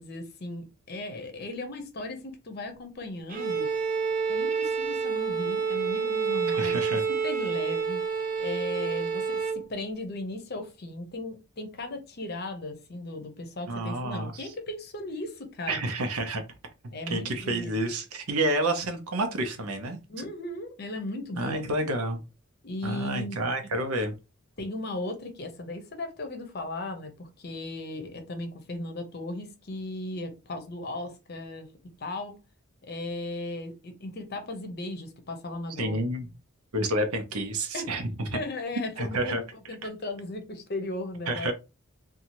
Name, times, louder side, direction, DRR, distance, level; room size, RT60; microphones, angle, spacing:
voice 1, 0.0-3.7 4.3-6.8 7.2-8.0 8.4-15.8 16.9-17.9 20.1-21.8 22.6-23.4 24.6-31.7 32.0-32.3 32.8-36.0 37.7-37.9 38.3-41.5, left 2 dB, 45° left, 0.6 m, -36 dB
Bowed string instrument, 3.3-9.7, right 5 dB, 35° right, 0.4 m, -28 dB
voice 2, 6.6-7.0 13.7-14.3 15.7-16.4 17.1-20.3 21.4-22.2 22.8-24.1 35.8-36.3 36.7-38.4 39.0-39.4 41.3-41.5, right 1 dB, 85° right, 0.7 m, -29 dB
2.7 x 2.3 x 2.9 m
head